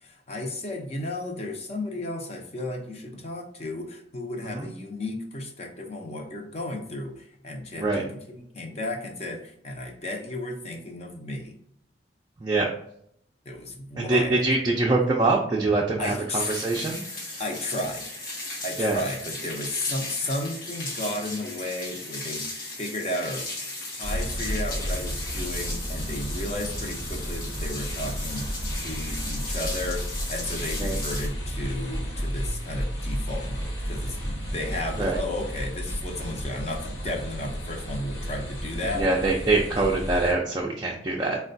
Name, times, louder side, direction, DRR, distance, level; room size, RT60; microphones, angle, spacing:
voice 1, 0.0-11.6 13.5-14.4 16.0-16.7 17.4-18.1 18.6-22.5 22.8-23.5 24.0-28.5 28.8-39.1, left 1 dB, 35° left, 2 dB, 0.6 m, -33 dB
voice 2, 14.0-17.0 18.8-19.0 30.8-31.0 35.0-35.2 38.9-41.4, right 2 dB, 25° right, -3 dB, 0.4 m, -24 dB
sound 1, 16.4-31.3, left 2 dB, 55° left, 1.0 m, -36 dB
sound 2, 24.0-40.3, equal, 80° left, 1.2 m, -32 dB
4.1 x 2.2 x 2.5 m, 0.70 s
head